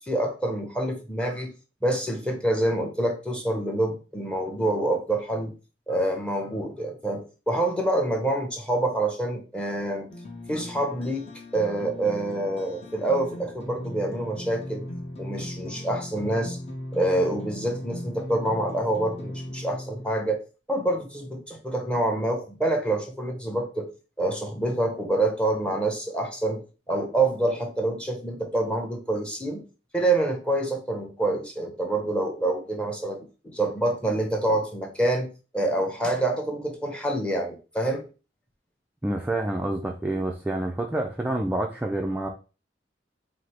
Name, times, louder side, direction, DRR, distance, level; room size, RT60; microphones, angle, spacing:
voice 1, 0.1-1.5 1.8-5.5 5.9-10.1 10.5-11.3 11.5-14.8 15.2-16.6 16.9-20.4 20.7-23.9 24.2-29.6 29.9-33.2 33.4-35.3 35.5-38.0, right 1 dB, 5° left, 3 dB, 0.8 m, -26 dB
sound 1, 10.1-20.1, left 1 dB, 35° left, 0.9 m, -38 dB
voice 2, 39.0-42.3, right 1 dB, 10° right, 1 dB, 0.4 m, -28 dB
4.9 x 2.0 x 4.3 m, 0.34 s
head